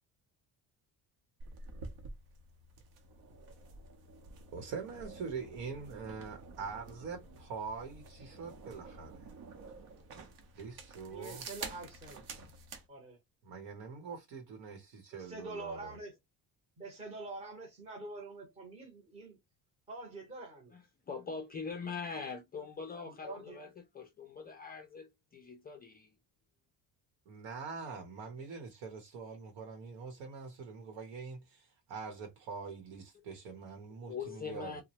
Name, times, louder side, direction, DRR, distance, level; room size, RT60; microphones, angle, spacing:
sound 1, 1.4-12.9, right 3 dB, 60° right, 0.9 m, -49 dB
voice 1, 4.5-9.3 10.5-11.4 13.4-16.0 27.3-34.8, right 5 dB, 85° right, 1.0 m, -44 dB
voice 2, 11.1-12.3 12.9-13.2 15.1-16.1 16.8-19.4 19.9-20.7 22.9-23.6, right 2 dB, 15° right, 0.8 m, -46 dB
voice 3, 20.7-26.1 34.1-34.8, left 5 dB, 25° left, 0.4 m, -43 dB
2.9 x 2.1 x 2.8 m
cardioid pair, 165°, 40 cm